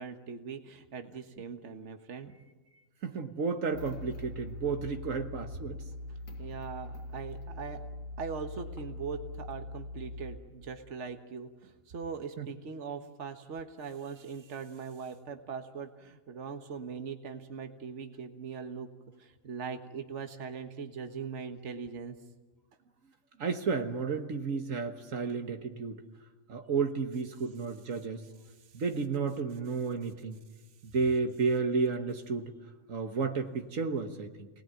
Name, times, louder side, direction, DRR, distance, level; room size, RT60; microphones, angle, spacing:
voice 1, 0.0-2.3 6.4-7.8 8.2-18.9 19.2-22.2 28.6-28.8, right 6 dB, 60° right, 7 dB, 1.7 m, -41 dB
voice 2, 3.0-5.8 12.4-12.5 23.4-26.0 26.5-28.2 28.7-30.4 30.8-32.5 32.9-34.5, right 5 dB, 75° right, 6 dB, 1.7 m, -32 dB
sound 1, 3.7-10.4, left 1 dB, 85° left, 2.4 m, -42 dB
27.0 x 19.5 x 9.2 m, 1.2 s
omnidirectional pair, 1.4 m